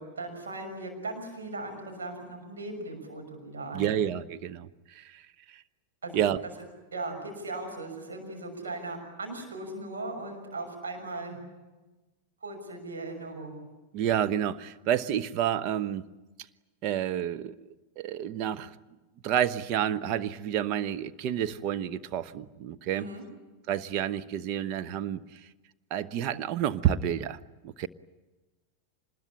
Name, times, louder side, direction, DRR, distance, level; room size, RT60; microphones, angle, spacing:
voice 1, 0.0-3.9 6.0-6.2 6.9-11.4 12.4-13.6 22.9-23.2, right 2 dB, 70° right, 6.3 m, -38 dB
voice 2, 3.7-5.6 6.1-6.4 13.9-16.0 16.8-17.6 18.0-18.7 19.2-23.1 23.7-25.4 25.9-27.9, right 10 dB, 40° right, 0.9 m, -29 dB
26.0 x 21.0 x 9.9 m
figure-of-eight pair, 90°, 0 cm